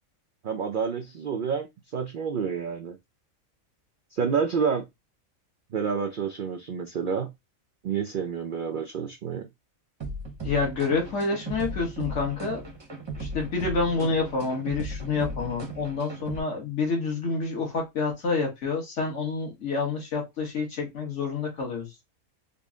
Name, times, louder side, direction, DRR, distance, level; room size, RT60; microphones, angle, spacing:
voice 1, 0.4-1.7 1.9-3.0 4.1-4.8 5.7-7.3 7.8-9.5, right 6 dB, 70° right, 0.5 m, -28 dB
sound 1, 10.0-16.4, right 2 dB, 25° right, 0.6 m, -36 dB
voice 2, 10.4-12.6 13.2-21.9, left 4 dB, 60° left, 1.5 m, -28 dB
3.8 x 2.0 x 3.6 m
omnidirectional pair, 1.4 m